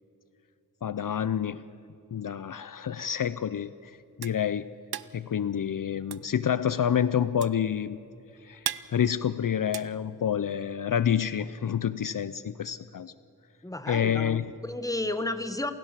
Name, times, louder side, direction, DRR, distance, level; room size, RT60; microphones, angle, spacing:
voice 1, 0.8-1.6 2.1-4.7 5.1-8.0 8.4-13.1 13.9-14.4, left 9 dB, 55° left, 15 dB, 0.6 m, -28 dB
sound 1, 3.6-10.7, right 9 dB, 75° right, 0.7 m, -39 dB
voice 2, 13.6-15.7, left 2 dB, 10° left, 10 dB, 1.2 m, -32 dB
29.0 x 16.0 x 7.5 m, 2.8 s
wide cardioid pair, 115°, 38 cm